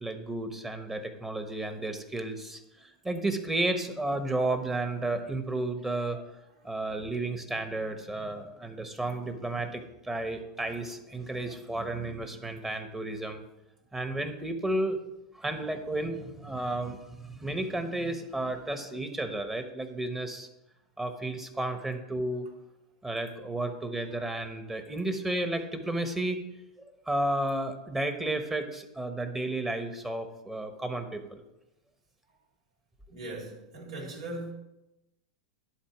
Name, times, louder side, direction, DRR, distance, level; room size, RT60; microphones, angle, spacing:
voice 1, 0.0-6.3 6.6-13.4 13.9-15.0 15.3-20.5 21.0-22.5 23.0-26.4 26.8-31.4, right 2 dB, 10° right, 7 dB, 1.2 m, -32 dB
voice 2, 33.1-34.5, right 2 dB, 80° right, -3 dB, 3.8 m, -39 dB
11.5 x 4.2 x 7.2 m, 0.94 s
hypercardioid pair, 105°, 3 cm